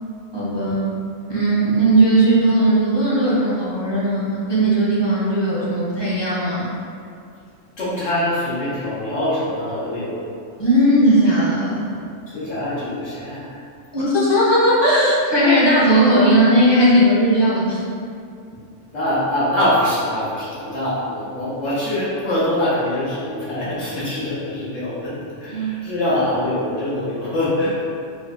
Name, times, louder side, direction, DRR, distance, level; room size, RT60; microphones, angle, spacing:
voice 1, 0.3-1.0 1.3-6.8 10.6-11.9 13.9-17.8 25.5-25.8, right 1 dB, 30° left, -8 dB, 0.5 m, -17 dB
voice 2, 7.8-10.3 12.0-13.6 18.9-27.8, left 1 dB, 80° left, -10 dB, 1.5 m, -24 dB
4.5 x 2.3 x 2.3 m, 2.4 s
omnidirectional pair, 1.3 m